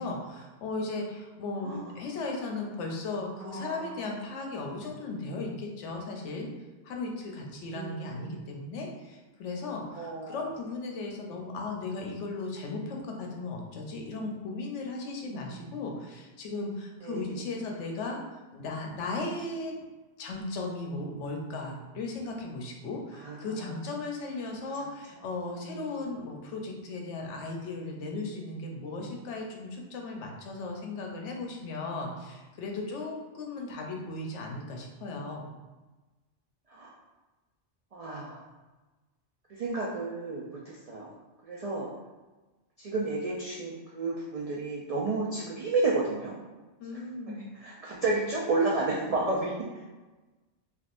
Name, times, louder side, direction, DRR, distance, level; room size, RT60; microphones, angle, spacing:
voice 1, 0.0-6.5 6.8-18.2 18.5-19.8 20.2-35.5 46.8-47.5, left 3 dB, 85° left, 1 dB, 0.9 m, -36 dB
voice 2, 3.4-4.0 7.7-8.4 9.9-10.4 15.3-15.6 17.0-17.5 23.2-23.8 25.4-25.7 36.7-36.9 37.9-38.4 39.5-41.1 41.4-41.9 42.8-46.3 47.3-49.5, right 3 dB, 75° right, -4 dB, 0.3 m, -32 dB
3.5 x 2.4 x 2.5 m, 1.2 s
omnidirectional pair, 1.2 m